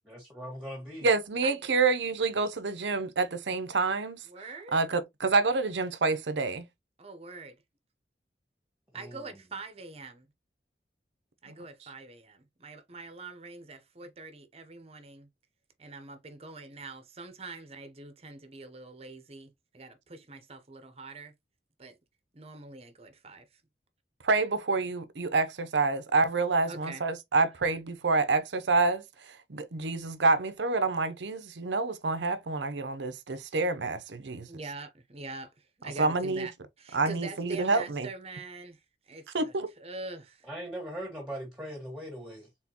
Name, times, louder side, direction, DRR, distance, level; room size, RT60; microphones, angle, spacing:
voice 1, 0.1-1.1 8.9-9.4 40.4-42.5, equal, 5° right, 1.6 m, -40 dB
voice 2, 1.0-4.2 4.7-6.6 24.2-29.0 29.5-34.5 36.0-36.5 36.9-38.1 39.3-39.7, right 3 dB, 85° right, 0.7 m, -27 dB
voice 3, 4.3-4.8 7.0-7.6 8.9-10.3 11.4-15.3 15.8-21.3 21.8-22.0 22.3-23.6 26.7-27.0 34.5-36.5 36.8-38.8 39.1-39.5 39.8-40.5, right 3 dB, 35° right, 0.9 m, -44 dB
4.3 x 3.7 x 2.9 m
head